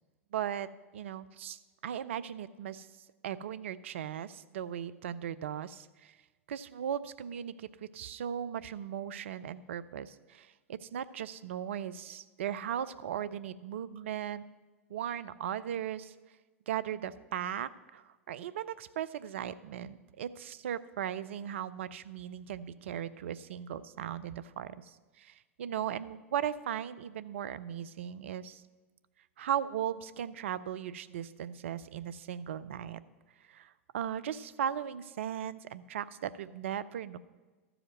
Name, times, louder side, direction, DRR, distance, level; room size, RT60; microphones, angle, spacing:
voice 1, 0.3-2.9 3.2-6.1 6.5-14.4 14.9-16.1 16.7-28.6 29.4-33.0 33.5-37.2, right 9 dB, 65° right, 16 dB, 0.5 m, -37 dB
13.5 x 5.0 x 7.7 m, 1.3 s
figure-of-eight pair, 95°, 7 cm